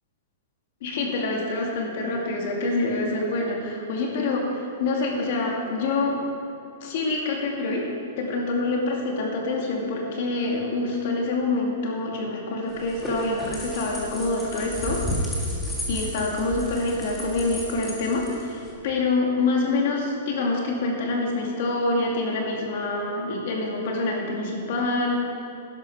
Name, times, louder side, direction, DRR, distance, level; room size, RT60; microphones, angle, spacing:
voice 1, 0.8-6.2 6.8-7.9 8.2-15.1 15.9-25.2, left 2 dB, 45° left, -1 dB, 2.4 m, -26 dB
sound 1, 12.7-18.7, equal, 5° left, 1.9 m, -32 dB
12.5 x 11.0 x 4.9 m, 2.8 s
supercardioid pair, 175°, 0 cm